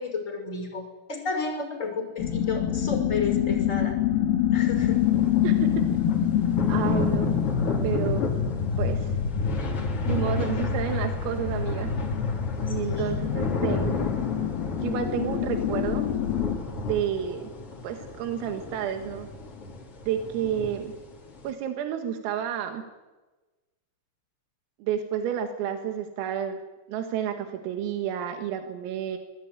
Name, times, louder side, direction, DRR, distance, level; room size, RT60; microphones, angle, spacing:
voice 1, 0.0-4.0 4.5-5.0 12.7-13.1, left 4 dB, 15° left, 4 dB, 5.8 m, -32 dB
sound 1, 2.2-16.6, left 8 dB, 55° left, 3.2 m, -26 dB
sound 2, 4.7-21.5, left 3 dB, 35° left, 3.4 m, -35 dB
voice 2, 5.4-6.0 6.7-7.3 7.8-8.3 8.8-9.1 10.1-11.9 12.7-14.0 14.8-16.0 16.9-17.5 17.8-19.3 20.1-20.9 21.4-22.8 24.8-26.6 26.9-29.2, right 9 dB, 90° right, 6 dB, 4.4 m, -30 dB
24.0 x 20.5 x 9.9 m, 1.2 s
omnidirectional pair, 5.8 m